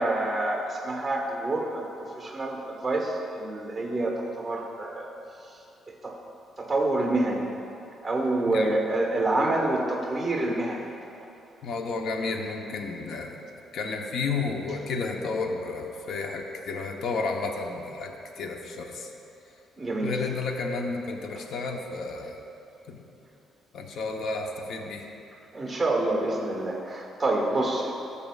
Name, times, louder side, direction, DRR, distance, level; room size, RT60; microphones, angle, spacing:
voice 1, 0.0-5.1 5.9-6.1 6.6-7.4 8.0-10.8 19.8-20.1 25.5-27.9, right 2 dB, 10° right, -2 dB, 1.5 m, -27 dB
voice 2, 11.6-13.4 13.7-19.1 20.0-22.4 22.9-23.0 23.7-25.1, left 4 dB, 65° left, 3 dB, 0.9 m, -32 dB
14.0 x 6.8 x 2.4 m, 2.9 s
cardioid pair, 85°, 0 cm